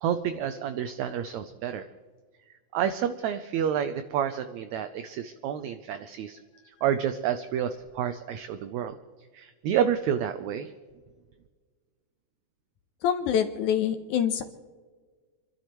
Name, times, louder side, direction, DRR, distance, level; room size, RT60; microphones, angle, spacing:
voice 1, 0.0-1.9 2.7-6.4 6.8-9.0 9.3-10.7, right 9 dB, 75° right, 10 dB, 1.7 m, -29 dB
voice 2, 13.0-14.4, left 9 dB, 75° left, 7 dB, 2.1 m, -25 dB
29.0 x 12.0 x 3.1 m, 1.5 s
omnidirectional pair, 3.8 m